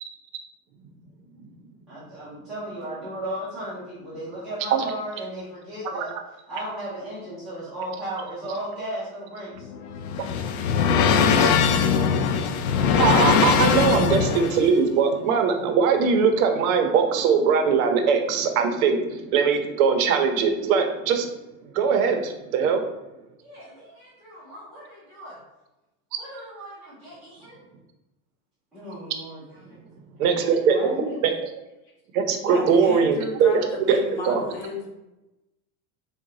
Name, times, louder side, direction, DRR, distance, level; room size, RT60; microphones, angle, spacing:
voice 1, 1.9-6.1 6.5-9.7 23.4-25.4 26.2-27.6 28.7-29.8 30.2-30.3 30.7-30.9, right 1 dB, ahead, -13 dB, 0.4 m, -36 dB
sound 1, 9.6-14.7, left 6 dB, 75° left, 0.5 m, -21 dB
voice 2, 12.9-21.3 21.7-22.8 30.2-30.8 31.2-31.3 32.1-34.4, right 6 dB, 65° right, 5 dB, 0.6 m, -21 dB
voice 3, 30.6-31.2 32.4-34.9, left 2 dB, 40° left, -2 dB, 1.0 m, -33 dB
3.9 x 2.2 x 3.6 m, 0.98 s
supercardioid pair, 165°, 45 cm